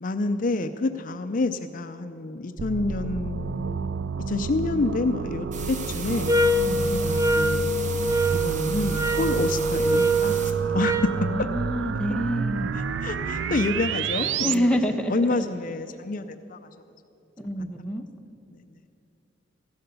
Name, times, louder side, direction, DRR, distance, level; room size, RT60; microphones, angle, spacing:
voice 1, 0.0-3.8 4.3-6.4 6.9-11.1 12.7-14.8 15.1-16.6 17.6-17.7 18.5-18.6, left 3 dB, 45° left, 8 dB, 0.5 m, -28 dB
sound 1, 2.6-14.6, right 5 dB, 75° right, 0.4 m, -30 dB
sound 2, 5.5-10.5, right 5 dB, 45° right, 1.2 m, -38 dB
sound 3, 6.3-11.2, right 1 dB, 20° right, 0.6 m, -24 dB
voice 2, 11.2-12.8 14.4-15.4 17.4-18.1, equal, 5° left, 3 dB, 1.0 m, -27 dB
15.5 x 11.5 x 6.8 m, 2.9 s
head